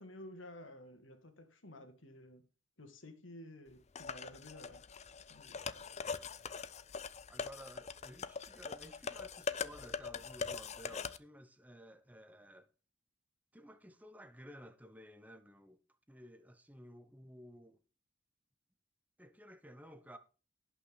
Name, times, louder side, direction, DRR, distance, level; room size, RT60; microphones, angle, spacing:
voice 1, 0.0-2.4 2.8-4.8 5.3-5.6, left 1 dB, 80° left, 2.3 m, -53 dB
sound 1, 4.0-11.2, left 5 dB, 35° left, 0.6 m, -42 dB
voice 2, 6.4-6.8 7.3-12.7 13.5-15.8 16.1-17.8 19.2-20.2, equal, 10° right, 0.8 m, -55 dB
17.5 x 5.9 x 3.9 m
head